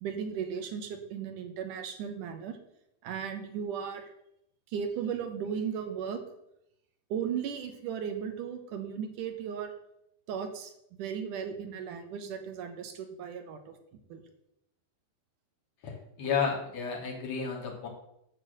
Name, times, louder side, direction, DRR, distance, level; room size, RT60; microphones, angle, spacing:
voice 1, 0.0-2.6 3.0-4.1 4.7-6.2 7.1-9.7 10.3-13.6 14.1-14.2, right 7 dB, 65° right, 6 dB, 2.3 m, -36 dB
voice 2, 15.8-17.9, left 6 dB, 45° left, -1 dB, 3.1 m, -32 dB
11.0 x 4.6 x 7.8 m, 0.78 s
omnidirectional pair, 4.5 m